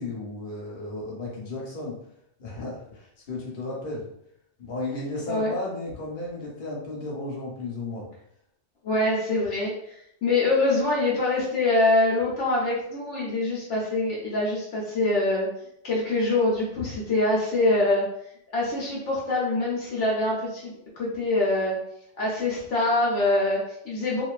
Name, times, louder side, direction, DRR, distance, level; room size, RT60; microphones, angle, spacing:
voice 1, 0.0-2.0 2.4-4.0 4.6-8.1, left 2 dB, 50° left, -3 dB, 0.9 m, -34 dB
voice 2, 8.8-15.5 15.8-18.0 18.5-21.8 22.2-24.2, left 2 dB, 75° left, -5 dB, 0.9 m, -24 dB
2.6 x 2.3 x 2.3 m, 0.74 s
omnidirectional pair, 1.2 m